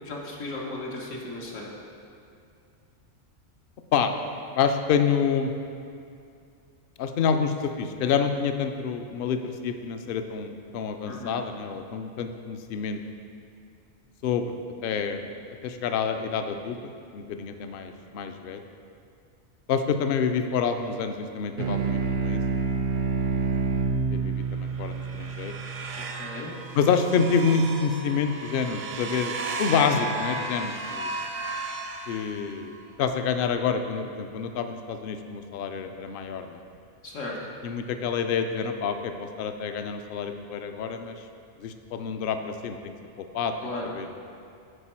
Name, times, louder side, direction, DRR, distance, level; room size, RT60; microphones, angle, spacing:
voice 1, 0.0-1.7 11.1-11.3 26.1-26.6 37.0-37.4 43.6-43.9, left 2 dB, 80° left, -3 dB, 1.4 m, -36 dB
voice 2, 4.5-5.5 7.0-13.0 14.2-15.3 15.6-18.6 19.7-22.4 24.1-25.5 26.7-31.1 32.1-36.6 37.6-41.2 41.6-42.9 43.2-43.5 43.9-44.1, left 6 dB, 60° left, 7 dB, 0.6 m, -28 dB
sound 1, 21.6-26.4, right 4 dB, 85° right, 1.1 m, -28 dB
sound 2, 24.5-32.8, right 2 dB, 60° right, 0.5 m, -35 dB
9.9 x 4.5 x 4.4 m, 2.5 s
omnidirectional pair, 1.3 m